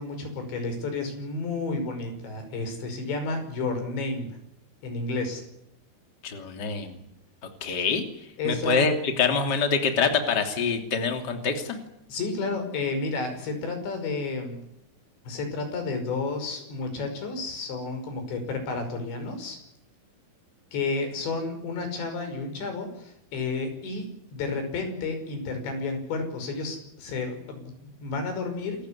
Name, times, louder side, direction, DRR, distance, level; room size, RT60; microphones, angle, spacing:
voice 1, 0.0-4.4 4.8-5.4 8.4-8.9 12.1-14.6 15.3-19.6 20.7-28.9, left 3 dB, 60° left, 6 dB, 7.6 m, -31 dB
voice 2, 6.2-7.0 7.6-8.0 8.4-11.8, left 5 dB, 30° left, 5 dB, 2.5 m, -25 dB
27.5 x 15.0 x 9.9 m, 0.84 s
omnidirectional pair, 5.7 m